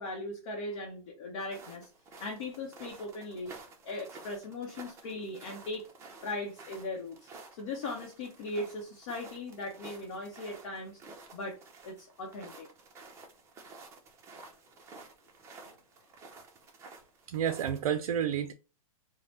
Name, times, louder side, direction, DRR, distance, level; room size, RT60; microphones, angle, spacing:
voice 1, 0.0-1.9 2.2-5.9 6.2-11.0 11.3-11.6 11.8-12.7 15.6-15.7, left 2 dB, 55° left, 0.8 m, -39 dB
sound 1, 1.4-17.9, right 3 dB, 15° right, 0.6 m, -52 dB
voice 2, 17.3-18.5, right 9 dB, 75° right, 0.4 m, -30 dB
3.2 x 2.1 x 2.8 m
hypercardioid pair, 140°, 18 cm